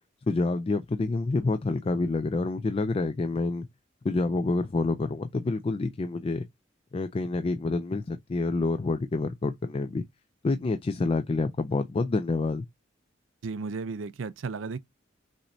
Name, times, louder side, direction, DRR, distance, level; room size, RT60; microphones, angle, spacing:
voice 1, 0.3-3.7 4.0-6.5 6.9-10.0 10.4-12.7, left 3 dB, 30° left, 0.3 m, -28 dB
voice 2, 13.4-14.8, right 4 dB, 85° right, 0.5 m, -34 dB
6.2 x 3.0 x 2.6 m
head